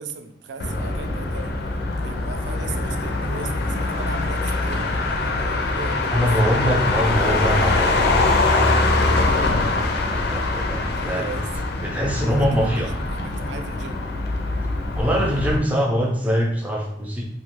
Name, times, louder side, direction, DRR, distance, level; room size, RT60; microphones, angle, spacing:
voice 1, 0.0-1.6 2.0-6.3 10.9-11.7 12.3-14.1, right 4 dB, 70° right, 7 dB, 0.4 m, -37 dB
Motor vehicle (road), 0.6-15.6, left 2 dB, 65° left, 0.4 m, -23 dB
voice 2, 6.1-9.5 9.8-11.2 11.8-12.9 15.0-17.3, equal, 10° right, -2 dB, 0.4 m, -24 dB
2.7 x 2.4 x 2.9 m, 0.76 s
head